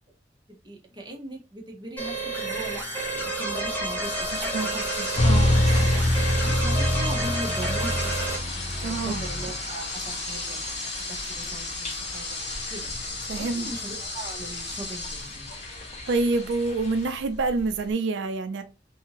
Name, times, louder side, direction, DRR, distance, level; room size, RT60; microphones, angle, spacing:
voice 1, 0.5-4.9 5.4-8.4 8.7-12.4 12.7-12.9 13.3-15.5, right 1 dB, 25° right, 0.7 m, -40 dB
sound 1, 2.0-8.4, right 2 dB, 10° left, 0.9 m, -30 dB
sound 2, 4.0-17.9, left 2 dB, 80° left, 1.5 m, -36 dB
voice 2, 4.3-5.5 8.8-9.2 13.3-13.7 16.1-18.6, right 3 dB, 90° right, 0.4 m, -27 dB
sound 3, 5.2-17.2, left 1 dB, 40° left, 0.8 m, -28 dB
2.7 x 2.5 x 2.9 m
head